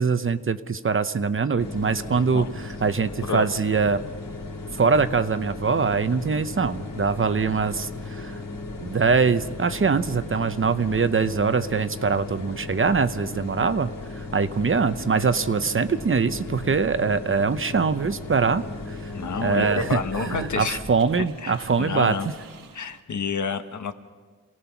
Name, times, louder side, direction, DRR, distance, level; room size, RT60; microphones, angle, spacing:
voice 1, 0.0-4.0 4.7-8.4 8.8-19.1 19.4-20.0 20.3-22.1, right 5 dB, 40° right, 12 dB, 0.8 m, -23 dB
sound 1, 1.6-20.9, left 3 dB, 80° left, 3.4 m, -36 dB
voice 2, 3.2-3.5 19.1-20.8 21.2-22.3 22.7-23.9, left 5 dB, 65° left, 8 dB, 1.3 m, -29 dB
sound 2, 17.4-23.0, right 4 dB, 80° right, 1.4 m, -39 dB
27.0 x 18.0 x 5.9 m, 1.4 s
wide cardioid pair, 105°, 33 cm